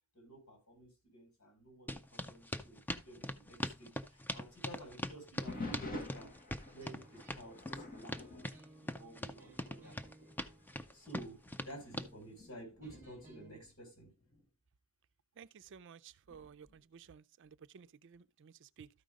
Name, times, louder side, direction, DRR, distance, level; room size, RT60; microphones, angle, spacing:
voice 1, 0.1-6.3 6.7-8.4 8.8-10.0 10.9-11.4 11.6-14.1, right 1 dB, 85° left, 5.4 m, -53 dB
sound 1, 1.9-12.1, left 1 dB, 10° left, 0.5 m, -42 dB
sound 2, 5.5-9.6 9.9-10.3 10.9-11.0 11.7-14.4 16.3-16.8, left 2 dB, 40° left, 1.7 m, -48 dB
sound 3, 6.8-13.6, right 2 dB, 10° right, 2.0 m, -61 dB
voice 2, 15.4-18.9, right 7 dB, 60° right, 0.4 m, -55 dB
13.0 x 5.2 x 3.6 m
head